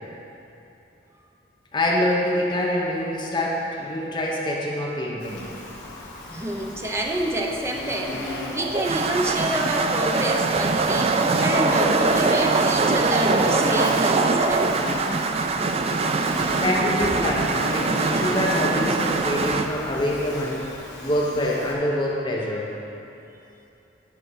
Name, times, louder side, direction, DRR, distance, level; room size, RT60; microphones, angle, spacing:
voice 1, 1.7-5.5 16.6-20.8 21.0-22.7, left 1 dB, 25° left, -2 dB, 1.0 m, -25 dB
Insect, 5.2-21.7, left 1 dB, 60° left, 1.7 m, -35 dB
voice 2, 6.3-14.7, right 1 dB, 15° right, 0 dB, 0.7 m, -28 dB
sound 1, 8.6-19.7, right 3 dB, 35° right, 0.4 m, -22 dB
11.0 x 4.5 x 6.2 m, 2.9 s
head